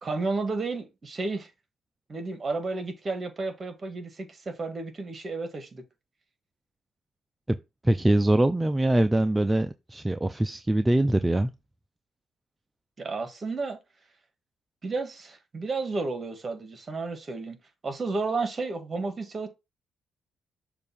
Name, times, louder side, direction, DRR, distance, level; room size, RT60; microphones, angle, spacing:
voice 1, 0.0-1.5 2.1-5.8 13.0-13.8 14.8-17.6 17.8-19.5, right 3 dB, 35° right, 1.6 m, -32 dB
voice 2, 7.8-11.5, right 1 dB, 15° right, 0.5 m, -23 dB
6.7 x 2.6 x 5.5 m
cardioid pair, 90°, 0 cm